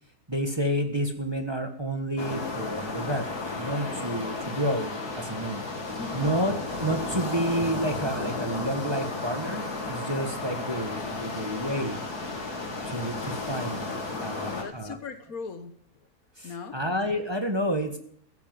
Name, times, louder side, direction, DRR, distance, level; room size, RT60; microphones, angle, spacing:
voice 1, 0.3-3.2 3.5-5.6 6.1-6.5 6.8-12.0 12.8-13.8 14.2-15.0 16.4-18.0, equal, 15° right, 5 dB, 1.5 m, -30 dB
sound 1, 2.2-14.6, left 3 dB, 85° left, 3.2 m, -33 dB
voice 2, 5.8-6.4 14.4-15.7 16.4-16.8, left 5 dB, 65° left, 9 dB, 1.7 m, -39 dB
15.0 x 10.5 x 7.7 m, 0.62 s
omnidirectional pair, 1.6 m